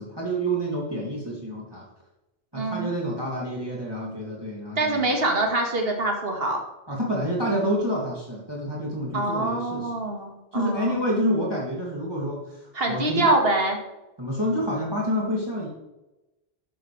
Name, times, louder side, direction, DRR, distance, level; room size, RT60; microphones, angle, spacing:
voice 1, 0.0-1.8 2.5-5.1 6.9-9.9 10.5-13.3 14.2-15.7, equal, 20° right, -4 dB, 2.9 m, -28 dB
voice 2, 2.5-2.9 4.8-6.6 9.1-10.9 12.7-13.8, right 2 dB, 65° right, 2 dB, 2.2 m, -25 dB
12.5 x 11.0 x 3.4 m, 1.0 s
omnidirectional pair, 1.1 m